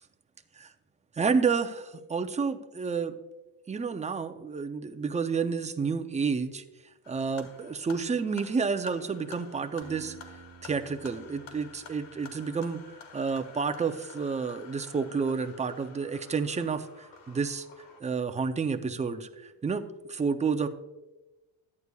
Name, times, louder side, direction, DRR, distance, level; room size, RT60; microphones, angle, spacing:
voice 1, 1.2-3.2 3.7-6.6 7.1-10.2 10.6-17.7 18.0-20.7, right 5 dB, 15° right, 8 dB, 0.5 m, -30 dB
sound 1, 7.0-18.0, left 6 dB, 75° left, 1.6 m, -51 dB
Acoustic guitar, 9.8-12.8, right 8 dB, 50° right, 1.2 m, -52 dB
13.5 x 9.7 x 2.3 m, 1.1 s
cardioid pair, 105°, 47 cm